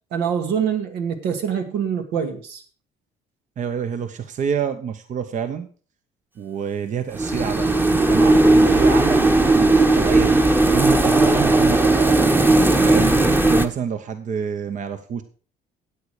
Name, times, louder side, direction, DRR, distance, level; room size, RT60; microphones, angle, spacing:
voice 1, 0.1-2.6, right 7 dB, 85° right, 5 dB, 2.3 m, -25 dB
voice 2, 3.6-5.7 6.4-10.4 10.7-12.0 12.9-15.2, right 7 dB, 45° right, 9 dB, 1.0 m, -27 dB
sound 1, 7.1-13.6, right 2 dB, 10° right, 1.1 m, -16 dB
13.0 x 8.6 x 5.0 m, 0.41 s
cardioid pair, 110°, 17 cm